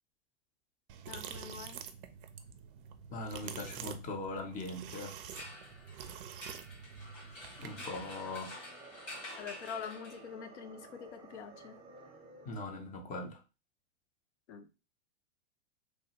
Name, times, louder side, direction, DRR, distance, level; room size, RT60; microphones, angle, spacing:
sound 1, 0.9-7.9, right 8 dB, 50° right, 0.5 m, -47 dB
voice 1, 1.1-1.8 7.6-7.8 9.4-11.8 14.5-14.7, left 7 dB, 70° left, 0.7 m, -45 dB
voice 2, 3.1-5.2 7.6-8.6 12.5-13.4, left 2 dB, 20° left, 0.6 m, -40 dB
sound 2, 4.8-10.5, left 1 dB, 90° left, 1.4 m, -49 dB
sound 3, 7.6-12.9, right 3 dB, 15° right, 0.7 m, -55 dB
3.2 x 2.2 x 2.8 m
hypercardioid pair, 110°, 36 cm